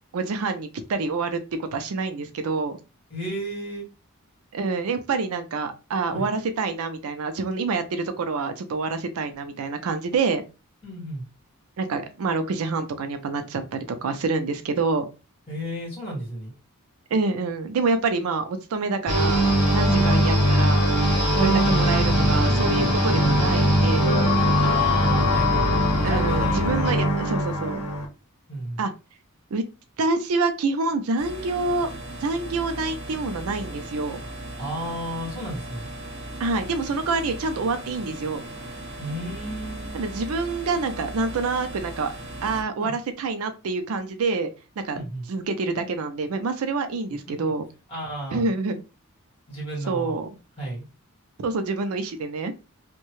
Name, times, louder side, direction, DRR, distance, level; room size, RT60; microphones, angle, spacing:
voice 1, 0.1-1.4 1.7-2.8 4.5-10.4 11.8-15.1 17.1-20.8 21.4-24.1 26.0-27.8 28.8-28.9 29.5-29.6 30.0-31.9 32.2-34.2 36.4-38.4 39.9-42.1 42.4-44.5 44.8-45.0 45.3-47.6 48.3-48.8 49.9-50.3 51.4-52.5, right 3 dB, 75° right, 9 dB, 0.4 m, -27 dB
voice 2, 3.1-3.9 6.1-6.3 10.8-11.3 15.5-16.5 19.9-20.2 24.6-26.9 28.5-28.8 34.6-35.9 39.0-40.0 42.8-42.9 44.9-45.3 47.3-47.5 47.9-48.5 49.5-50.2 50.6-50.8, right 1 dB, 25° left, -4 dB, 1.7 m, -33 dB
sound 1, 19.1-28.1, equal, 80° left, 0.7 m, -21 dB
sound 2, 19.1-27.1, equal, 25° right, 1.4 m, -31 dB
sound 3, 31.2-42.6, right 1 dB, 55° right, 0.9 m, -37 dB
2.7 x 2.2 x 3.0 m, 0.30 s
head